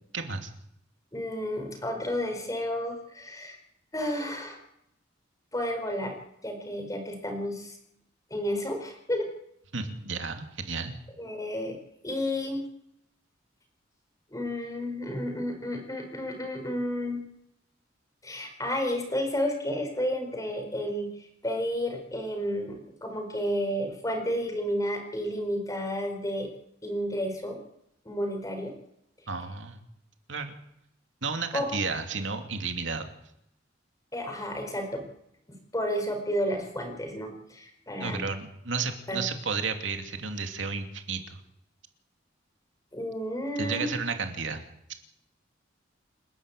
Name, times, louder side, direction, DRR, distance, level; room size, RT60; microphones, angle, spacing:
voice 1, 0.1-0.5 9.7-10.9 29.3-29.8 30.3-30.6 31.2-33.1 38.0-41.4 43.6-44.6, right 4 dB, 80° right, 5 dB, 2.7 m, -32 dB
voice 2, 1.1-3.6 3.9-4.6 5.5-6.2 6.4-7.8 8.3-9.3 11.2-11.8 12.0-12.6 14.3-17.2 18.2-26.5 26.8-27.6 28.0-28.7 31.5-31.8 34.1-35.0 35.5-38.2 39.1-39.2 42.9-43.9, equal, 20° left, 5 dB, 4.7 m, -31 dB
28.5 x 11.5 x 8.4 m, 0.79 s
head